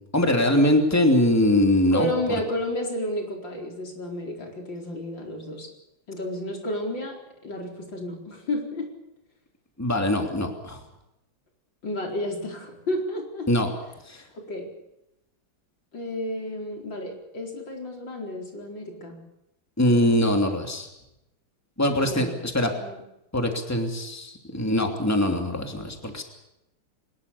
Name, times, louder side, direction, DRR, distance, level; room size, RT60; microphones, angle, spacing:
voice 1, 0.1-2.1 9.8-10.8 13.5-13.7 14.1-14.2 19.8-20.9 21.8-22.7 23.3-26.2, left 1 dB, 10° left, 4 dB, 2.9 m, -22 dB
voice 2, 1.9-5.7 6.1-7.2 7.4-8.9 11.8-13.5 14.3-14.7 15.9-19.2 21.8-22.3 22.6-23.0, left 1 dB, 75° left, 1 dB, 5.1 m, -32 dB
24.0 x 21.0 x 7.1 m, 0.89 s
omnidirectional pair, 2.0 m